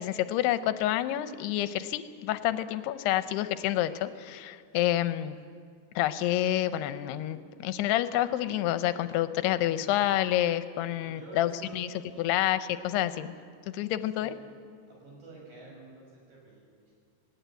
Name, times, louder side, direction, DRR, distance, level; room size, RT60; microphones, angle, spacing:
voice 1, 0.0-5.4 6.0-11.9 12.2-12.6 12.8-13.3 13.7-14.3, left 13 dB, 85° left, 12 dB, 2.7 m, -28 dB
voice 2, 10.9-12.4 13.7-14.3 14.9-16.9, right 2 dB, 55° right, -2 dB, 8.2 m, -50 dB
19.5 x 17.5 x 9.1 m, 2.2 s
omnidirectional pair, 4.7 m